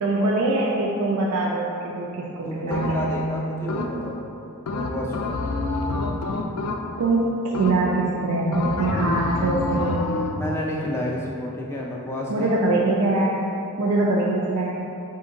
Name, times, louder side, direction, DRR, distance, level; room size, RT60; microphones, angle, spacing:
voice 1, 0.0-3.3 7.0-10.1 12.3-13.4 13.8-14.8, right 2 dB, 85° right, -4 dB, 0.4 m, -23 dB
voice 2, 2.5-4.3 4.7-5.5 10.3-12.6, left 1 dB, 10° left, -3 dB, 0.3 m, -30 dB
sound 1, 2.7-3.2 3.7-4.2 4.7-7.1 7.5-8.1 8.5-10.5, left 3 dB, 80° left, 0.4 m, -28 dB
4.3 x 2.6 x 3.8 m, 2.8 s
head